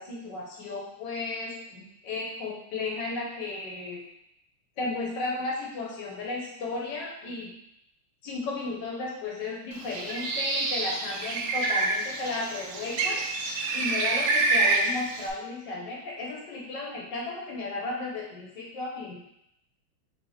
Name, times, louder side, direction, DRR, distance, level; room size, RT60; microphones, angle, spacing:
voice 1, 0.0-4.0 4.8-7.5 8.2-13.2 13.7-19.2, left 3 dB, 60° left, -3 dB, 1.5 m, -34 dB
Bird, 9.8-15.3, right 3 dB, 70° right, 1.2 m, -27 dB
4.1 x 3.3 x 3.3 m, 0.78 s
omnidirectional pair, 2.4 m